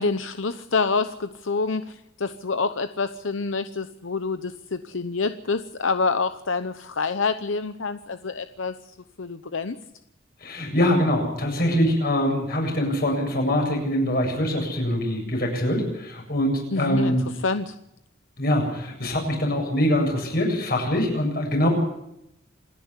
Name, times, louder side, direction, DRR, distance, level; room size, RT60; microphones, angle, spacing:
voice 1, 0.0-9.8 16.7-17.2 17.4-17.7, left 4 dB, 85° left, 10 dB, 0.9 m, -27 dB
voice 2, 10.4-17.3 18.4-21.7, left 1 dB, 50° left, 1 dB, 7.6 m, -23 dB
26.5 x 10.5 x 9.9 m, 0.82 s
head